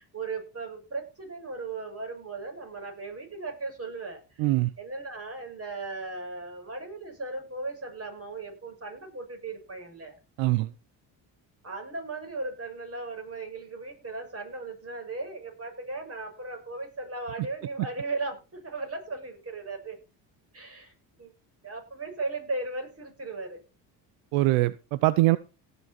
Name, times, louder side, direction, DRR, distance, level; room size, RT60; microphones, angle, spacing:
voice 1, 0.0-10.2 11.6-20.0 20.5-20.9 21.2-21.3 21.6-23.6, right 3 dB, 30° right, 7.2 m, -37 dB
voice 2, 4.4-4.7 10.4-10.7 24.3-25.4, right 18 dB, 85° right, 0.8 m, -23 dB
17.5 x 7.0 x 4.3 m
supercardioid pair, 70°, 46 cm